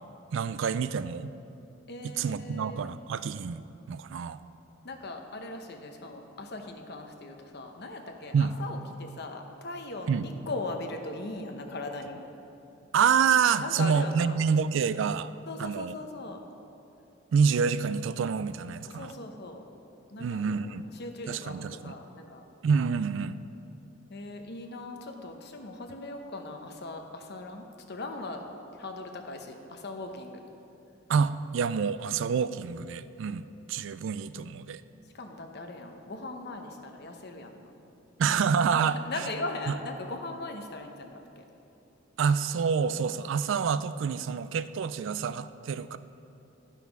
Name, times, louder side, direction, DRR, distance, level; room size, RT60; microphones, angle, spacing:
voice 1, 0.3-1.3 2.0-3.6 3.9-4.4 8.3-8.5 10.1-10.3 12.9-15.3 15.6-15.9 17.3-19.1 20.2-20.9 21.3-21.9 22.6-23.4 31.1-34.8 38.2-39.0 42.2-46.0, right 6 dB, 65° right, 14 dB, 0.3 m, -27 dB
voice 2, 1.9-2.9 4.8-12.2 13.6-14.4 15.5-16.4 18.9-19.6 20.1-22.4 24.1-28.4 28.7-30.4 35.1-37.7 38.7-41.4, left 2 dB, 55° left, 4 dB, 0.9 m, -39 dB
11.5 x 5.8 x 5.9 m, 2.8 s
head